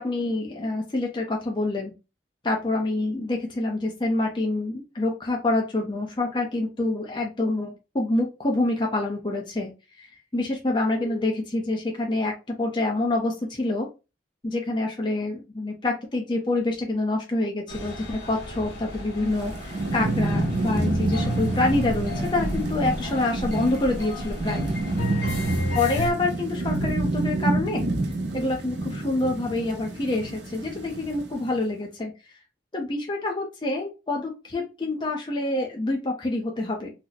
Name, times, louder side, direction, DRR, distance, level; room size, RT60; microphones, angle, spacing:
voice 1, 0.0-1.9 2.4-13.9 14.4-24.6 25.7-27.9 28.3-32.1 32.7-36.9, left 2 dB, 25° left, 1 dB, 0.5 m, -27 dB
sound 1, 17.7-26.1, equal, 70° left, 1.2 m, -31 dB
Thunderstorm / Rain, 19.3-31.6, right 2 dB, 75° right, 0.6 m, -29 dB
2.8 x 2.0 x 3.9 m, 0.28 s
head